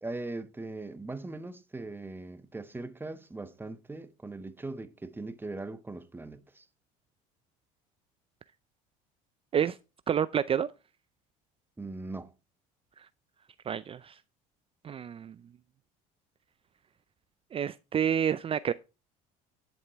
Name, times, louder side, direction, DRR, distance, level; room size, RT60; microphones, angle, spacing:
voice 1, 0.0-6.7 11.8-12.3, right 2 dB, 10° right, 1.1 m, -40 dB
voice 2, 10.1-10.7 13.0-13.1 13.7-14.2 14.8-15.3 17.5-18.7, right 8 dB, 30° right, 0.5 m, -29 dB
10.5 x 7.2 x 4.6 m
supercardioid pair, 90°, 18 cm